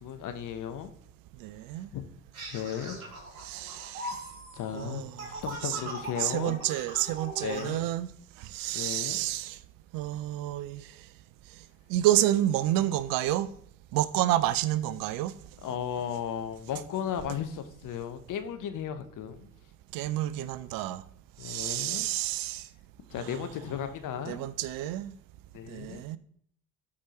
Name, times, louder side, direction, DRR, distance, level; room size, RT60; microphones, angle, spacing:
voice 1, 0.0-0.9 1.9-2.1 2.5-3.0 4.5-6.6 7.4-7.9 8.7-9.2 15.6-19.5 21.4-22.1 23.1-24.5 25.5-26.0, left 9 dB, 50° left, 1.0 m, -35 dB
voice 2, 1.4-1.9 3.4-4.2 4.7-5.3 5.6-5.8 6.2-8.1 8.4-9.6 9.9-10.9 11.9-13.5 13.9-15.3 19.9-21.0 21.4-22.7 23.2-23.3 24.3-25.1 25.7-26.2, right 14 dB, 55° right, 0.5 m, -29 dB
sound 1, 2.3-7.7, right 2 dB, 90° right, 1.4 m, -40 dB
13.5 x 4.8 x 2.9 m
hypercardioid pair, 55°, 41 cm